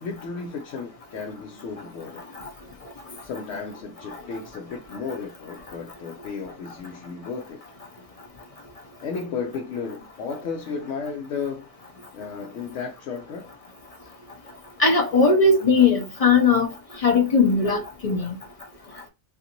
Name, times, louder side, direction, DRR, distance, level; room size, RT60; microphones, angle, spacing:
voice 1, 0.0-2.3 3.2-7.6 9.0-11.7 12.1-13.5, left 5 dB, 75° left, 0.9 m, -34 dB
voice 2, 14.8-16.7 17.0-18.3, left 4 dB, 40° left, 0.6 m, -19 dB
2.5 x 2.5 x 2.8 m
omnidirectional pair, 1.2 m